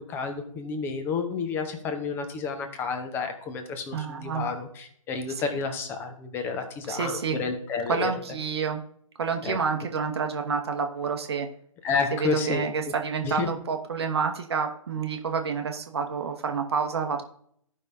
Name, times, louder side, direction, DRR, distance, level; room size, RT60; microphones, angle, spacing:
voice 1, 0.1-8.1 9.4-9.6 11.8-12.7 13.2-13.5, left 5 dB, 10° left, 7 dB, 0.8 m, -30 dB
voice 2, 3.9-4.4 6.9-7.4 7.9-8.8 9.2-11.5 12.1-17.2, right 6 dB, 45° right, 4 dB, 1.0 m, -28 dB
15.0 x 5.5 x 2.7 m, 0.65 s
figure-of-eight pair, 135°, 18 cm